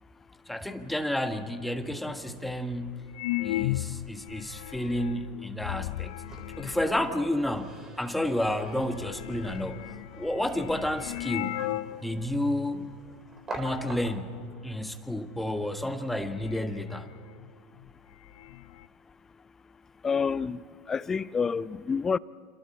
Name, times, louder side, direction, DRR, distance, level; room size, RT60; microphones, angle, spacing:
voice 1, 0.5-3.1 3.4-6.1 6.6-11.6 12.0-12.9 13.6-14.3 14.6-17.1, left 1 dB, 5° left, 1.5 m, -31 dB
sound 1, 3.1-7.4 8.1-8.2 8.5-12.0 12.3-12.4 13.1-13.4 13.7-14.2 15.4-15.5 15.9-17.5 17.8-17.9 18.1-18.9, left 16 dB, 65° left, 0.6 m, -36 dB
sound 2, 6.0-14.5, right 2 dB, 25° right, 4.2 m, -46 dB
voice 2, 20.0-20.6 20.9-22.2, left 5 dB, 20° left, 0.5 m, -28 dB
28.5 x 26.5 x 4.2 m
hypercardioid pair, 85°, 2 cm